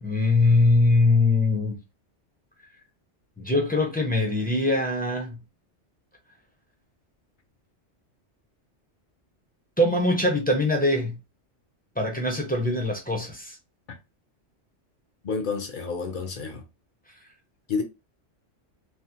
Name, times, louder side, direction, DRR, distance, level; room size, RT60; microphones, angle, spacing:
voice 1, 0.0-1.8 3.4-5.4 9.8-11.2 12.0-13.6, left 2 dB, 10° left, 0.5 m, -22 dB
voice 2, 15.2-16.6 17.7-17.8, left 5 dB, 55° left, 0.6 m, -29 dB
3.1 x 2.0 x 2.8 m
omnidirectional pair, 1.2 m